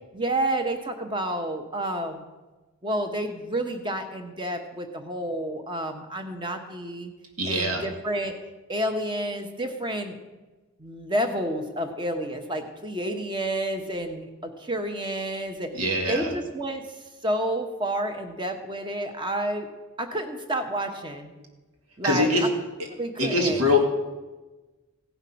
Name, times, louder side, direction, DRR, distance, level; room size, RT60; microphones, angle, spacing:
voice 1, 0.1-2.3 2.8-7.1 7.5-8.3 8.7-10.1 10.8-15.7 16.1-16.8 17.2-19.7 20.0-21.3 22.0-22.5 22.9-23.6, right 1 dB, 20° right, 5 dB, 1.0 m, -30 dB
voice 2, 7.4-7.8 15.8-16.3 22.0-22.5 23.2-23.8, left 2 dB, 80° right, 2 dB, 2.1 m, -23 dB
16.5 x 5.8 x 5.7 m, 1.2 s
head